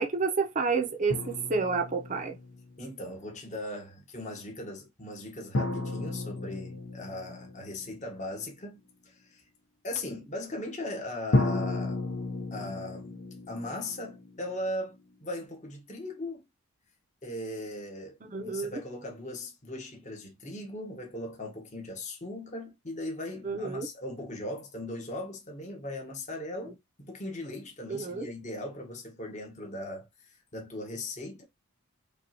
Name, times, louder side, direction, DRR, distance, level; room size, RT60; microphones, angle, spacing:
voice 1, 0.0-2.3 18.2-18.8 23.4-23.9 27.9-28.3, right 4 dB, 35° right, 0.7 m, -29 dB
sound 1, 1.1-2.9 5.5-8.4 11.3-15.1, left 2 dB, 60° left, 0.8 m, -33 dB
voice 2, 2.8-8.8 9.0-9.4 9.8-12.0 12.5-13.1 13.5-14.9 15.2-16.4 17.2-18.2 18.4-31.4, left 1 dB, 30° left, 1.1 m, -38 dB
5.3 x 2.4 x 2.8 m
head